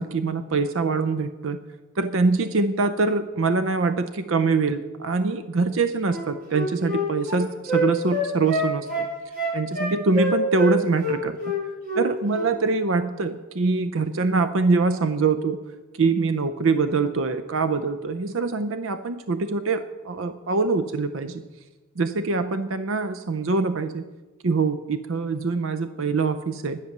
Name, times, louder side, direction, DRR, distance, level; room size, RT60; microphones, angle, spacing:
voice 1, 0.0-1.6 2.0-8.9 9.5-11.4 12.0-15.6 15.9-21.4 22.0-24.0 24.4-26.8, right 4 dB, 65° right, 10 dB, 0.6 m, -24 dB
Wind instrument woodwind instrument, 6.1-10.7 11.0-12.1 12.3-12.5, left 1 dB, 45° right, 5.2 m, -26 dB
11.0 x 10.5 x 6.6 m, 1.2 s
head